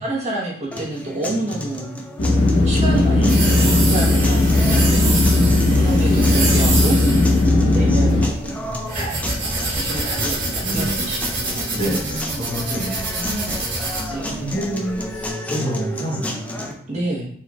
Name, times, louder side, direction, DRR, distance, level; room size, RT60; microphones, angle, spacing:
voice 1, 0.0-2.0 2.6-5.0 5.7-7.0 7.7-12.5 13.1-13.6 14.1-14.7 16.9-17.3, right 2 dB, 35° right, -5 dB, 1.0 m, -29 dB
sound 1, 0.7-16.7, left 1 dB, 5° left, 0.4 m, -32 dB
sound 2, 2.2-8.3, left 2 dB, 70° left, 0.8 m, -16 dB
sound 3, 2.3-15.2, right 2 dB, 60° right, 1.4 m, -26 dB
voice 2, 3.1-3.7 10.6-11.1 11.7-13.3 13.6-13.9 14.4-16.8, right 1 dB, 30° left, -6 dB, 1.4 m, -28 dB
4.1 x 3.6 x 2.3 m, 0.63 s
head